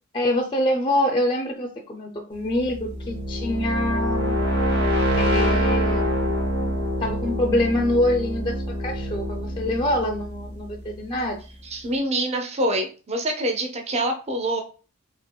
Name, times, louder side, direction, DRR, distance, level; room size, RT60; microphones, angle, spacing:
voice 1, 0.1-4.3 5.2-6.2 7.0-11.4, left 1 dB, 20° left, 4 dB, 0.4 m, -25 dB
sound 1, 2.5-11.3, equal, 60° right, 1.7 m, -25 dB
voice 2, 11.6-14.6, right 1 dB, 30° right, 4 dB, 0.6 m, -25 dB
4.9 x 2.8 x 2.2 m, 0.36 s
head